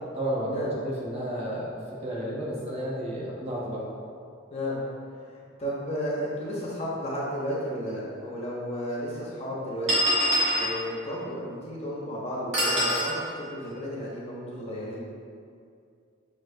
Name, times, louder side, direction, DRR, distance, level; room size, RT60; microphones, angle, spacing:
voice 1, 0.1-1.7 2.0-3.9, equal, 30° right, -6 dB, 0.9 m, -31 dB
voice 2, 5.3-9.9 10.6-15.0, equal, 35° left, -6 dB, 0.7 m, -33 dB
sound 1, 7.9-8.0 8.9-9.0 9.9-10.7 12.5-13.1, equal, 65° right, 1.5 m, -24 dB
6.3 x 3.0 x 2.2 m, 2.3 s
head